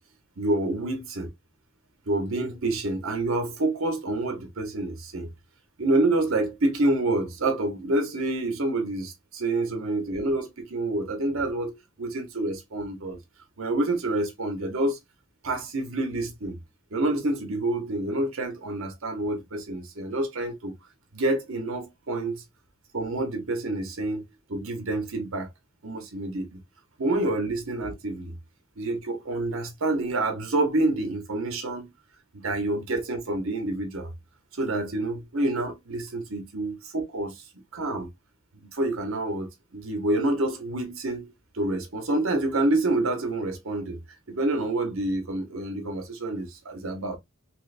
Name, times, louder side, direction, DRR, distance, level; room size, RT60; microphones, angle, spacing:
voice 1, 0.4-1.3 2.1-5.3 5.8-13.2 13.6-15.0 15.4-16.6 16.9-20.7 21.1-22.4 22.9-24.2 24.5-25.5 25.8-26.6 27.0-28.3 28.8-31.9 32.4-34.1 34.5-37.4 37.7-38.1 38.7-44.0 44.3-47.2, right 2 dB, 65° right, 0.8 m, -28 dB
3.3 x 3.1 x 2.4 m
head